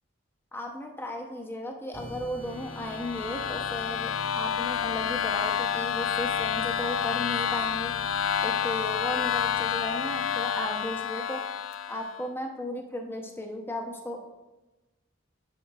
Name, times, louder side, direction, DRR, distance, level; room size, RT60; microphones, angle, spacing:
voice 1, 0.5-8.0 8.4-11.4 11.9-14.2, left 1 dB, 10° left, 2 dB, 0.6 m, -35 dB
sound 1, 1.9-11.3, equal, 50° left, 1.2 m, -45 dB
sound 2, 2.5-12.2, left 8 dB, 80° left, 0.4 m, -29 dB
7.3 x 6.9 x 2.3 m, 1.1 s
head